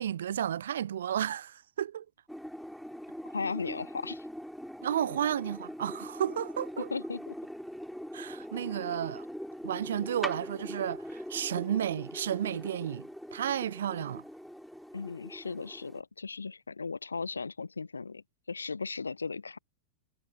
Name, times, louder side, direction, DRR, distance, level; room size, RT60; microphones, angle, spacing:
voice 1, 0.0-2.1 4.8-6.9 8.1-9.3 9.6-13.1 13.3-14.2, right 10 dB, 65° right, 0.4 m, -32 dB
sound 1, 2.3-16.0, equal, ahead, 3.5 m, -42 dB
voice 2, 3.3-4.2 6.9-7.3 14.9-19.6, left 4 dB, 75° left, 0.7 m, -37 dB
figure-of-eight pair, 90°, 0 cm